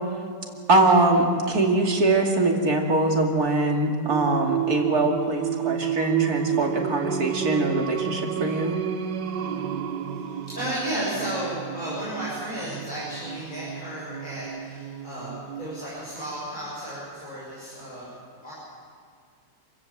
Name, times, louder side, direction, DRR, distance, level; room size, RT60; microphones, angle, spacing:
voice 1, 0.7-8.8, right 2 dB, 60° right, 1 dB, 3.0 m, -22 dB
Singing, 4.1-15.8, right 10 dB, 85° right, 1.6 m, -31 dB
voice 2, 10.1-18.1 18.4-18.5, equal, 25° left, -8 dB, 7.4 m, -33 dB
28.0 x 16.0 x 7.6 m, 2.2 s
omnidirectional pair, 1.8 m